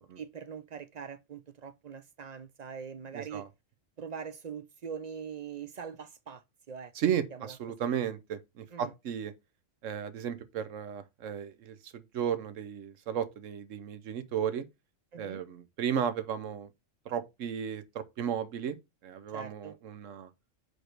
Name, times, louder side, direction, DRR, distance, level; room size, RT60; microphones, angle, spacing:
voice 1, 0.0-3.5 4.0-6.9 7.3-7.9 8.7-8.9 15.1-15.4 19.3-19.8, right 7 dB, 55° right, 0.4 m, -43 dB
voice 2, 3.1-3.5 6.9-9.3 9.8-14.6 15.2-16.7 17.1-18.8 19.0-20.3, right 8 dB, 80° right, 1.1 m, -34 dB
5.0 x 4.3 x 4.4 m
omnidirectional pair, 1.3 m